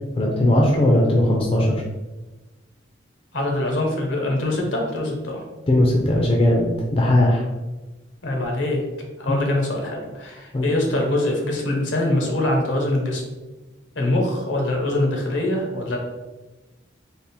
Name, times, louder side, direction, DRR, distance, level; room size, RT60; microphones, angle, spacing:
voice 1, 0.2-1.8 5.7-7.4 9.3-9.4 10.5-10.7, left 1 dB, 30° left, -1 dB, 0.4 m, -18 dB
voice 2, 3.3-5.4 8.2-8.9 9.2-13.2 13.9-16.0, left 1 dB, 75° left, 1 dB, 0.9 m, -23 dB
3.5 x 2.1 x 4.1 m, 1.1 s
head